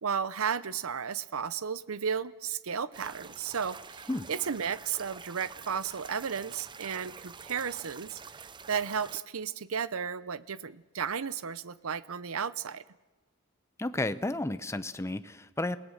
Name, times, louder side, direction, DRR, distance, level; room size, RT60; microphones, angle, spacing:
voice 1, 0.0-8.2 8.7-12.8, right 7 dB, 90° right, 16 dB, 0.7 m, -34 dB
sound 1, 2.9-9.2, right 5 dB, 20° right, 0.6 m, -47 dB
voice 2, 13.8-15.8, left 2 dB, 15° left, 13 dB, 0.7 m, -32 dB
28.5 x 18.0 x 6.4 m, 1.2 s
head